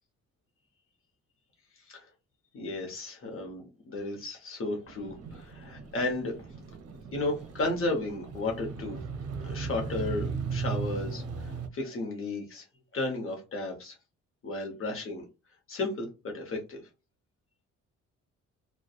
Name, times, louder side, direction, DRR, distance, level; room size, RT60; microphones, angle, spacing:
voice 1, 2.5-6.3 7.1-9.0 9.4-12.6 12.9-13.9 14.4-15.2 15.7-16.8, left 2 dB, 45° left, 1.0 m, -34 dB
sound 1, 4.8-11.7, right 5 dB, 55° right, 0.6 m, -37 dB
2.6 x 2.3 x 2.3 m
cardioid pair, 90°, 30 cm